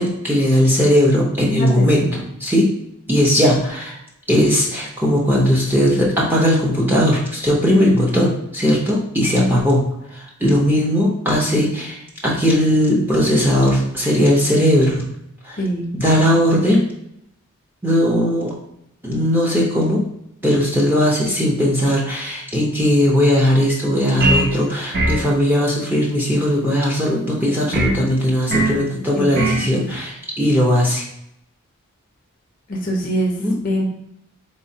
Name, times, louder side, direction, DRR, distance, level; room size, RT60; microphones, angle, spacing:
voice 1, 0.0-2.0 2.4-2.7 3.1-4.0 4.3-15.1 15.4-15.6 15.9-16.8 17.8-18.5 19.0-20.0 20.4-31.1 33.4-33.6, equal, 10° right, -4 dB, 0.7 m, -18 dB
voice 2, 1.5-2.0 15.6-15.9 29.1-29.8 32.7-33.3 33.6-33.9, equal, 40° left, 0 dB, 0.5 m, -24 dB
sound 1, 24.2-24.6 24.9-25.3 27.7-28.0 28.5-28.8 29.3-29.7, right 2 dB, 50° right, 0.5 m, -19 dB
4.0 x 3.1 x 2.7 m, 0.77 s
head